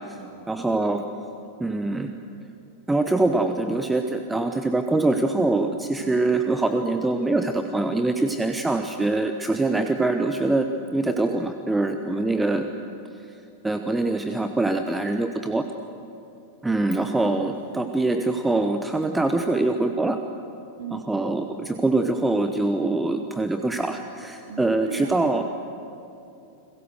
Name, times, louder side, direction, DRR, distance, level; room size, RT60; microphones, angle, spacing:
voice 1, 0.5-1.1 1.6-2.1 2.9-10.7 10.9-12.7 13.6-15.6 16.6-20.2 20.9-25.4, right 2 dB, 10° right, 7 dB, 1.1 m, -24 dB
voice 2, 16.9-17.9 20.8-21.1 24.5-25.4, right 6 dB, 60° right, -2 dB, 3.1 m, -39 dB
30.0 x 21.5 x 6.4 m, 2.7 s
figure-of-eight pair, 90°, 0 cm